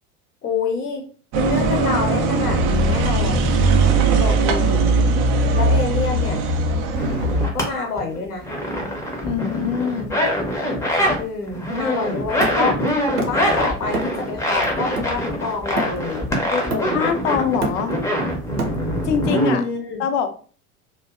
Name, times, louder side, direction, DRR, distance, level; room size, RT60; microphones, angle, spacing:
voice 1, 0.4-1.0 1.3-3.6 4.2-5.0 5.5-6.4 7.5-8.5 11.2-12.8 13.2-17.1 19.5-20.0, left 4 dB, 80° left, 2 dB, 0.8 m, -27 dB
sound 1, 1.3-7.5, right 3 dB, 30° right, 0.4 m, -19 dB
sound 2, 6.9-7.6 8.0-11.2 11.5-19.6, equal, 5° left, 0.6 m, -24 dB
voice 2, 9.2-10.1 16.9-17.9 19.0-19.6 20.0-20.3, left 7 dB, 50° left, 8 dB, 0.6 m, -23 dB
Hammer, 12.4-13.5 13.9-14.3 14.6-16.2 16.7-17.2 17.4-19.1, right 3 dB, 85° right, 0.7 m, -28 dB
2.5 x 2.2 x 2.4 m, 0.41 s
figure-of-eight pair, 80°, 45 cm